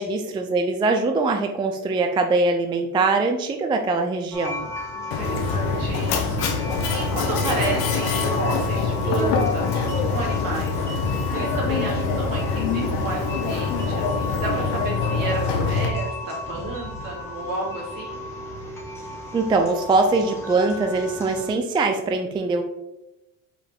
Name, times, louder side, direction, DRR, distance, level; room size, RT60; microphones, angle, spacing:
voice 1, 0.0-4.7 19.3-22.6, right 3 dB, 15° right, 5 dB, 0.3 m, -22 dB
sound 1, 4.3-21.5, left 2 dB, 5° left, 1.2 m, -34 dB
voice 2, 4.9-10.8 11.3-18.2, right 3 dB, 60° right, -2 dB, 2.3 m, -32 dB
Mechanisms, 5.1-15.9, left 4 dB, 85° left, 1.1 m, -24 dB
5.7 x 5.0 x 3.4 m, 0.90 s
cardioid pair, 155°, 37 cm